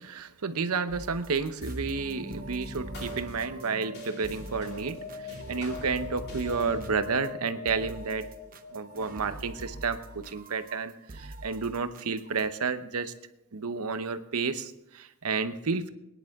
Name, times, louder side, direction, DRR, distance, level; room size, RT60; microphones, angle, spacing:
voice 1, 0.0-5.0 5.3-8.3 8.7-13.1 13.5-15.9, right 5 dB, 75° right, 11 dB, 0.9 m, -31 dB
sound 1, 0.9-12.5, right 2 dB, 40° right, 0.8 m, -45 dB
sound 2, 1.6-10.3, left 2 dB, 50° left, 2.7 m, -41 dB
22.0 x 10.5 x 3.6 m, 0.90 s
head